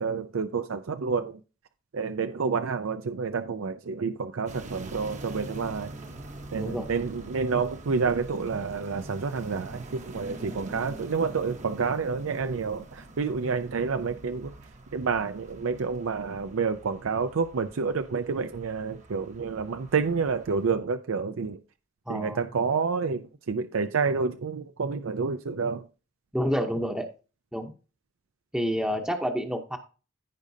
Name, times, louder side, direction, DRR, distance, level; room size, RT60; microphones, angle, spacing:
voice 1, 0.0-1.4 1.9-5.9 6.5-14.5 14.9-21.6 22.1-25.8, right 5 dB, 85° right, 0.5 m, -29 dB
sound 1, 4.5-20.7, right 2 dB, 35° right, 0.9 m, -45 dB
voice 2, 6.5-6.8 22.1-22.4 26.3-27.1 27.5-27.7 28.5-29.8, equal, 5° right, 0.8 m, -28 dB
15.0 x 5.1 x 2.7 m
head